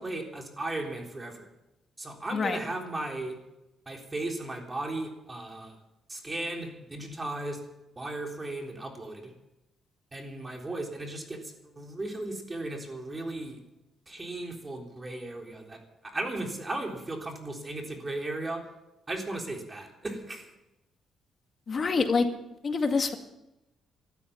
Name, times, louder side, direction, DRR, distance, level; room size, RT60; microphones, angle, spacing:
voice 1, 0.0-1.5 2.0-3.4 3.9-5.8 6.1-7.6 8.0-9.3 10.1-13.6 14.1-18.7 19.1-20.5, right 2 dB, 25° right, 2 dB, 3.7 m, -36 dB
voice 2, 21.7-22.3 22.6-23.1, left 4 dB, 45° left, 6 dB, 2.0 m, -26 dB
14.0 x 13.0 x 7.2 m, 0.93 s
cardioid pair, 90°, 0 cm